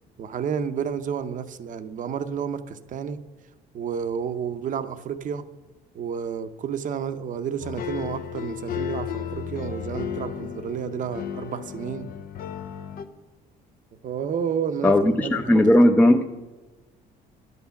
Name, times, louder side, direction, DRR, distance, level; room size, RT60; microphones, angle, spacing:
voice 1, 0.2-3.2 3.7-5.5 5.9-12.1 14.0-15.7, right 7 dB, 50° right, 0.7 m, -31 dB
sound 1, 7.6-13.1, left 8 dB, 60° left, 0.8 m, -34 dB
voice 2, 14.8-16.2, left 1 dB, 10° left, 0.6 m, -17 dB
11.0 x 8.3 x 7.1 m
cardioid pair, 110°, 17 cm